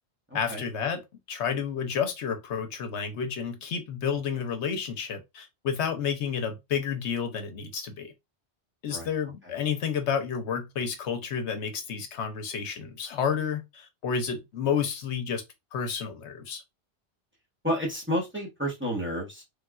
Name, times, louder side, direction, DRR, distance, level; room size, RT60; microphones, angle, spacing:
voice 1, 0.3-1.0 1.3-8.1 8.8-15.4 15.7-16.6, left 7 dB, 85° left, 1.0 m, -30 dB
voice 2, 17.6-19.4, equal, 10° right, 0.8 m, -30 dB
3.3 x 2.4 x 2.3 m
omnidirectional pair, 1.1 m